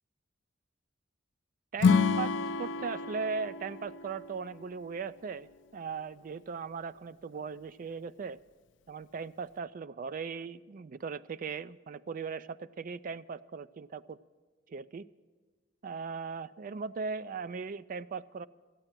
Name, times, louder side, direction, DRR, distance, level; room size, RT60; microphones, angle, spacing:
voice 1, 1.7-5.5 5.7-8.4 8.9-14.2 14.7-15.0 15.8-18.5, right 5 dB, 45° right, 15 dB, 0.3 m, -38 dB
Acoustic guitar / Strum, 1.8-5.1, left 5 dB, 65° left, 0.4 m, -29 dB
14.0 x 8.9 x 7.4 m, 1.4 s
head